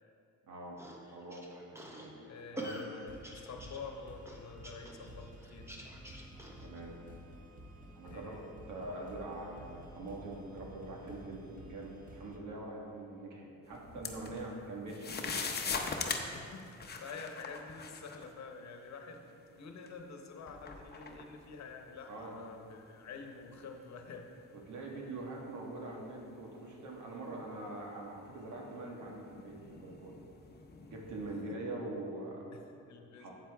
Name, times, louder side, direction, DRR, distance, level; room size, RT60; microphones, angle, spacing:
voice 1, 0.5-0.8 1.1-2.1 2.5-2.7 6.6-7.0 7.9-8.4 8.7-15.4 22.1-22.3 24.7-30.2 30.9-32.5 33.2-33.3, right 2 dB, 75° right, -1 dB, 1.6 m, -43 dB
sound 1, 0.8-6.8, right 1 dB, 10° right, 1.1 m, -46 dB
voice 2, 2.2-3.2 3.4-5.7 8.0-8.5 16.1-24.3 31.5-31.6 32.5-33.3, left 4 dB, 65° left, 4 dB, 1.0 m, -48 dB
sound 2, 3.1-12.4, right 1 dB, 30° right, 1.4 m, -52 dB
sound 3, 13.7-14.6 14.9-18.3 19.1-19.2 19.9-22.4 22.8-22.9 23.5-23.8 24.3-26.4 27.0-27.1 28.1-31.4, left 4 dB, 35° left, 0.8 m, -42 dB
8.7 x 7.8 x 3.5 m, 2.5 s
cardioid pair, 90°, 30 cm